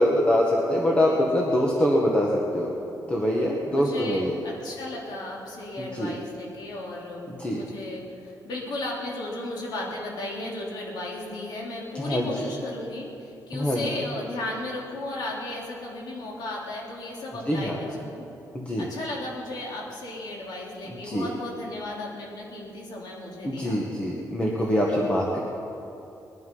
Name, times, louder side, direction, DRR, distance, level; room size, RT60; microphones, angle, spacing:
voice 1, 0.0-2.7 3.1-4.3 5.8-6.1 7.3-7.6 11.9-12.3 13.5-13.8 17.5-17.8 18.5-18.9 21.0-21.3 23.4-25.4, equal, 15° left, -2 dB, 1.4 m, -24 dB
voice 2, 3.7-7.2 7.5-18.3 18.8-23.8, left 2 dB, 70° left, -3 dB, 3.6 m, -35 dB
20.5 x 11.5 x 5.5 m, 2.8 s
wide cardioid pair, 170°, 7 cm